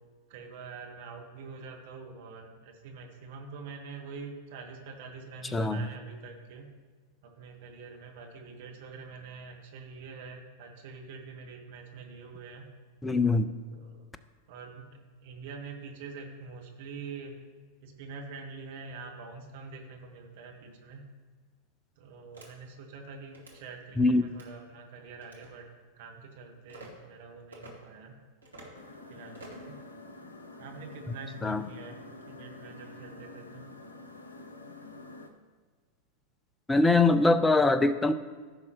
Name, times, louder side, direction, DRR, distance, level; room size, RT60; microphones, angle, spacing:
voice 1, 0.3-6.7 7.2-12.7 13.7-14.1 14.5-17.4 17.8-21.0 22.0-25.7 26.0-28.2 29.1-29.9 30.6-32.0 32.3-33.7, right 4 dB, 50° right, 2 dB, 1.4 m, -45 dB
voice 2, 5.5-5.9 13.0-13.5 24.0-24.2 31.4-31.7 36.7-38.1, left 3 dB, 10° left, 12 dB, 0.5 m, -23 dB
sound 1, 22.3-22.5 23.3-23.6 24.3-24.5 25.2-25.5 26.7-26.9 27.5-27.7 28.4-28.8 29.3-29.7, right 1 dB, 80° right, 1.8 m, -48 dB
sound 2, 28.7-35.3, left 2 dB, 75° left, 0.8 m, -48 dB
15.0 x 5.9 x 3.0 m, 1.5 s
figure-of-eight pair, 90°, 0 cm